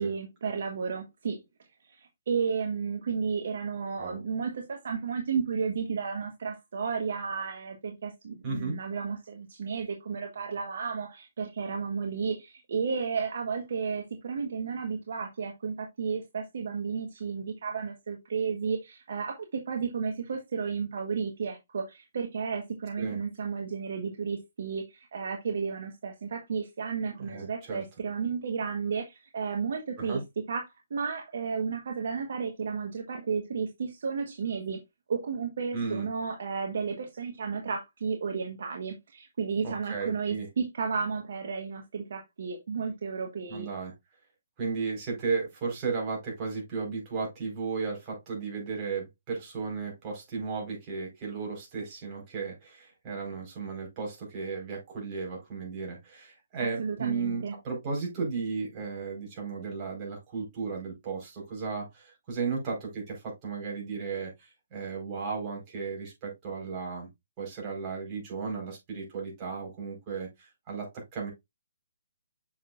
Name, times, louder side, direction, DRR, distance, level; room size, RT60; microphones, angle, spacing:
voice 1, 0.0-1.4 1.8-30.2 30.5-30.6 30.9-34.8 35.1-43.7 56.6-57.5, right 5 dB, 60° right, 1.3 m, -33 dB
voice 2, 8.4-8.8 23.0-23.2 27.2-27.8 30.0-30.2 35.7-36.1 39.6-40.5 43.5-43.9 44.6-67.1 67.4-71.3, right 5 dB, 30° right, 4.5 m, -35 dB
7.1 x 6.1 x 2.5 m
hypercardioid pair, 145°, 0 cm